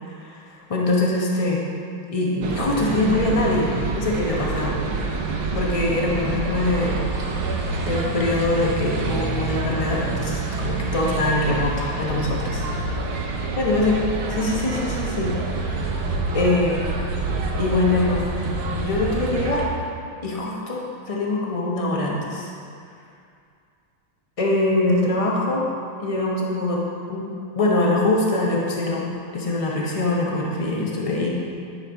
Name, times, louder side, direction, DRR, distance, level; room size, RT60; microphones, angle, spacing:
voice 1, 0.7-1.7 2.1-5.2 5.5-7.0 7.8-12.6 13.6-15.3 16.3-16.9 17.6-18.2 18.7-19.6 20.2-22.5 24.4-25.7 26.0-26.8 27.1-31.3, left 2 dB, 55° left, -3 dB, 0.3 m, -23 dB
Leicester Sq - Evening Standard seller outside station, 2.4-19.7, right 3 dB, 80° right, 1.7 m, -27 dB
10.5 x 4.5 x 5.1 m, 2.4 s
omnidirectional pair, 2.3 m